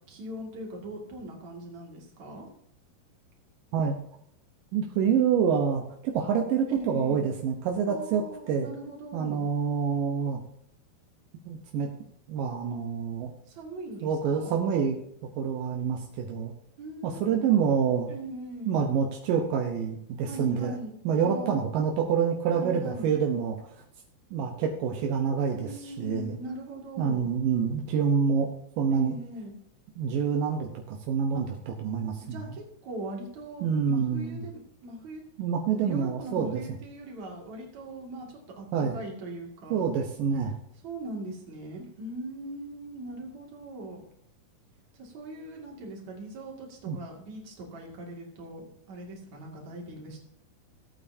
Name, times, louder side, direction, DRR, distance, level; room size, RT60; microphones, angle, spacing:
voice 1, 0.1-2.5 6.7-7.3 7.9-9.5 13.5-14.5 16.8-17.6 18.1-18.8 20.3-21.0 21.2-21.7 22.5-23.1 25.5-27.3 28.9-29.6 31.3-31.4 32.2-35.2 35.8-39.9 40.8-44.0 44.9-50.2, right 1 dB, 45° right, -1 dB, 3.1 m, -40 dB
voice 2, 4.7-8.7 9.1-10.4 11.5-11.9 12.3-13.3 14.0-15.0 15.4-16.5 17.0-18.1 18.7-20.7 21.1-23.6 24.3-26.4 27.0-28.5 28.8-29.1 30.0-32.4 33.6-34.4 35.4-36.6 38.7-39.0 39.7-40.6 46.9-47.0, right 7 dB, 75° right, 1 dB, 2.1 m, -27 dB
16.5 x 8.6 x 2.8 m, 0.71 s
omnidirectional pair, 5.0 m